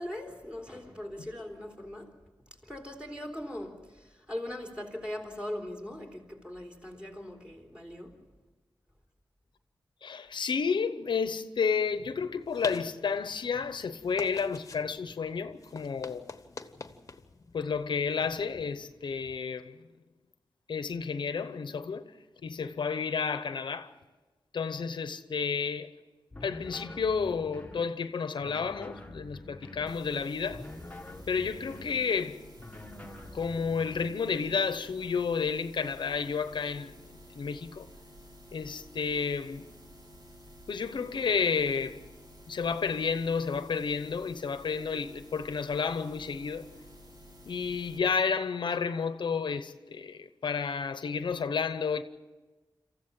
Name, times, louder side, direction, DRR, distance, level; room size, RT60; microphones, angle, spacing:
voice 1, 0.0-2.1 2.6-8.2, left 1 dB, 10° right, 3.9 m, -40 dB
voice 2, 10.0-16.2 17.5-19.8 20.7-22.1 22.4-23.9 24.5-25.9 26.4-30.7 31.3-32.4 33.3-37.0 37.3-37.9 38.5-39.7 40.7-42.0 42.5-46.6 47.5-52.0, left 5 dB, 75° left, 0.9 m, -31 dB
sound 1, 11.9-19.4, left 3 dB, 40° left, 1.1 m, -47 dB
sound 2, 26.3-27.9 28.4-30.0 30.5-32.1 32.6-34.2, left 1 dB, 15° left, 1.3 m, -46 dB
sound 3, 29.9-48.0, equal, 55° right, 3.8 m, -52 dB
27.0 x 14.5 x 7.6 m
wide cardioid pair, 90°, 8 cm